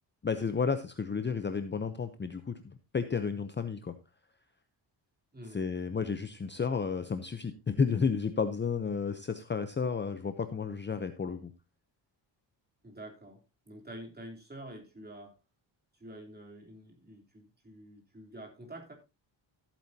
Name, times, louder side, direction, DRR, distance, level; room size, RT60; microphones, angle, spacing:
voice 1, 0.2-4.0 5.5-11.5, left 5 dB, 25° left, 9 dB, 0.8 m, -32 dB
voice 2, 12.8-15.3 16.0-18.9, right 1 dB, 20° right, 1 dB, 3.6 m, -47 dB
14.5 x 8.6 x 2.8 m, 0.26 s
cardioid pair, 125°, 46 cm